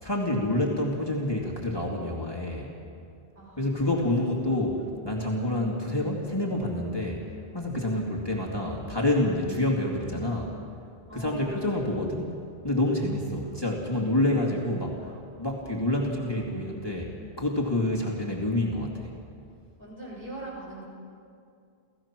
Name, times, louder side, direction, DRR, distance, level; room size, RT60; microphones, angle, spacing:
voice 1, 0.0-2.8 3.6-7.3 7.5-10.5 11.1-12.3 12.6-19.2, left 1 dB, 20° left, -2 dB, 2.4 m, -28 dB
voice 2, 11.1-11.8 13.4-13.5 16.0-16.5 17.9-18.1 19.8-20.8, right 1 dB, 55° right, -6 dB, 7.0 m, -43 dB
30.0 x 16.0 x 6.0 m, 2.4 s
omnidirectional pair, 1.1 m